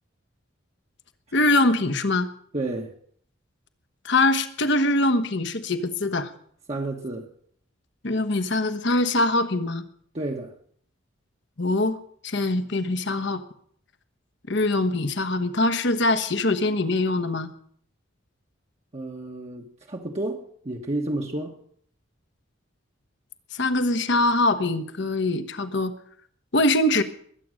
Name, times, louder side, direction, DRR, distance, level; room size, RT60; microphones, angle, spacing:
voice 1, 1.3-2.3 4.0-6.3 8.0-9.8 11.6-12.0 12.2-13.4 14.5-17.5 23.5-25.9 26.5-27.0, left 2 dB, 60° left, 1.2 m, -23 dB
voice 2, 2.5-2.9 6.7-7.3 10.1-10.5 18.9-21.6, right 2 dB, 35° right, 1.2 m, -31 dB
21.5 x 8.7 x 6.4 m
head